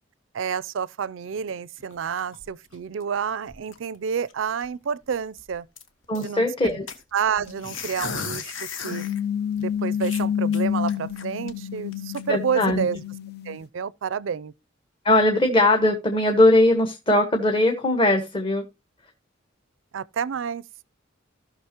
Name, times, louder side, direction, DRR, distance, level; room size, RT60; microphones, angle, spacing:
voice 1, 0.3-5.7 6.2-6.8 7.1-8.5 8.8-9.0 9.6-13.0 13.5-14.5 19.9-20.6, right 7 dB, 70° right, 0.4 m, -29 dB
sound 1, 1.8-3.2 3.5-4.0 4.3-4.4 4.6-4.8 5.1-6.3 6.9-9.2 9.6-9.7 10.0-11.5 11.9-12.2, left 5 dB, 70° left, 1.4 m, -36 dB
voice 2, 6.1-6.8 12.3-12.9 15.0-18.7, left 1 dB, 25° left, 1.2 m, -20 dB
sound 2, 7.4-7.6 8.9-13.6, left 8 dB, 55° left, 0.6 m, -28 dB
16.0 x 6.0 x 2.9 m
head